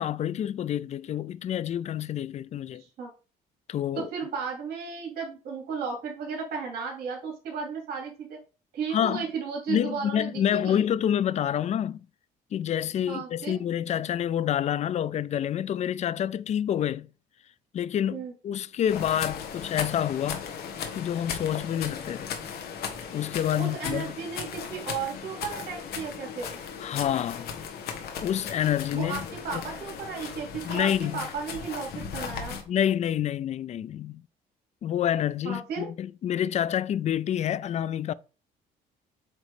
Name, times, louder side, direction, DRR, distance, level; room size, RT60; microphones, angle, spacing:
voice 1, 0.0-2.8 3.7-4.1 8.9-9.2 9.7-12.0 12.5-17.1 17.7-20.5 21.0-22.3 23.1-24.1 26.8-27.5 28.2-29.3 29.5-29.6 30.6-31.3 32.7-34.2 34.8-38.1, left 10 dB, 40° left, 0.4 m, -28 dB
voice 2, 2.8-3.1 3.9-8.4 8.7-10.8 13.1-13.6 18.1-18.3 23.6-26.6 28.9-32.6 35.4-35.9, right 5 dB, 65° right, 2.9 m, -34 dB
sound 1, 18.9-32.6, left 7 dB, 70° left, 1.5 m, -37 dB
8.2 x 3.1 x 4.9 m
cardioid pair, 110°, 17 cm